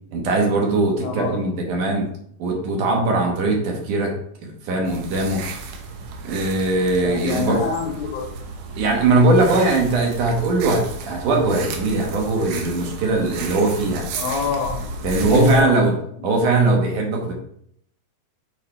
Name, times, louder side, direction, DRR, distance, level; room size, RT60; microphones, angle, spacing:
voice 1, 0.1-2.1 2.4-4.1 4.4-5.4 6.2-7.6 8.8-14.0 15.0-15.9 16.2-17.3, right 2 dB, 65° right, 0 dB, 2.4 m, -20 dB
voice 2, 1.0-1.4 7.0-8.5 8.8-8.9 14.1-14.9 15.2-15.8 16.1-16.2, left 5 dB, 75° left, -1 dB, 2.6 m, -26 dB
sound 1, 4.9-15.6, right 3 dB, 90° right, 3.0 m, -33 dB
7.0 x 4.7 x 4.4 m, 0.69 s
omnidirectional pair, 4.6 m